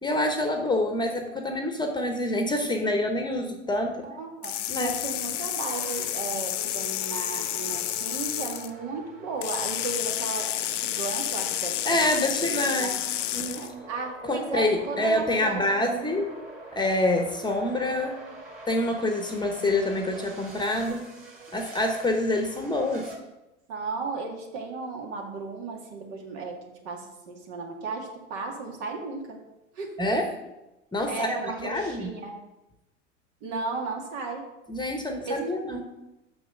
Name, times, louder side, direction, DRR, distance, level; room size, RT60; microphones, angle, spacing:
voice 1, 0.0-4.0 4.7-5.0 11.8-12.9 13.3-13.7 14.2-16.3 16.7-18.2 18.7-21.1 21.5-23.1 30.0-30.3 30.9-32.1 34.7-35.8, left 1 dB, 10° left, 4 dB, 1.0 m, -26 dB
voice 2, 4.0-12.9 13.6-16.2 23.7-26.6 26.8-29.4 29.7-29.9 31.1-32.3 33.4-34.4 35.3-35.5, right 4 dB, 65° right, 1 dB, 2.0 m, -35 dB
sound 1, 4.4-8.7 9.4-13.7, left 13 dB, 80° left, 0.7 m, -30 dB
sound 2, 5.5-23.2, right 2 dB, 25° right, 2.5 m, -45 dB
6.1 x 6.0 x 6.1 m, 0.97 s
hypercardioid pair, 100°, 36 cm